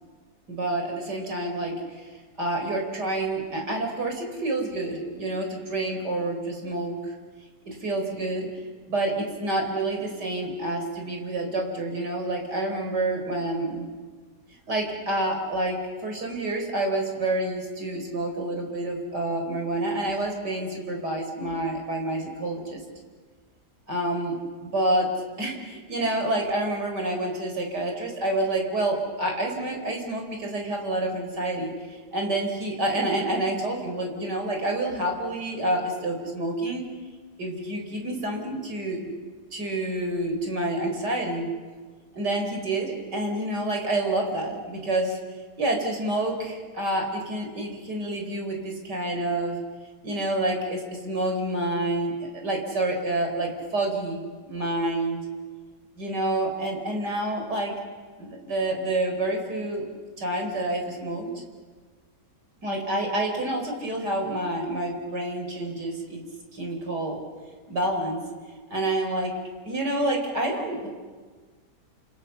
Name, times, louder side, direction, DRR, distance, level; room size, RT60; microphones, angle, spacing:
voice 1, 0.5-2.1 2.4-7.1 7.7-8.5 8.9-13.9 14.7-22.8 23.9-24.3 24.6-25.1 25.4-36.8 37.4-39.1 39.5-41.5 42.1-45.2 45.6-49.6 50.0-55.2 56.0-57.7 58.2-59.9 60.2-61.3 62.6-66.2 66.5-67.2 67.7-68.2 68.7-69.3 69.6-70.9, right 1 dB, 75° right, 2 dB, 5.1 m, -28 dB
29.5 x 27.0 x 6.9 m, 1.4 s
omnidirectional pair, 1.8 m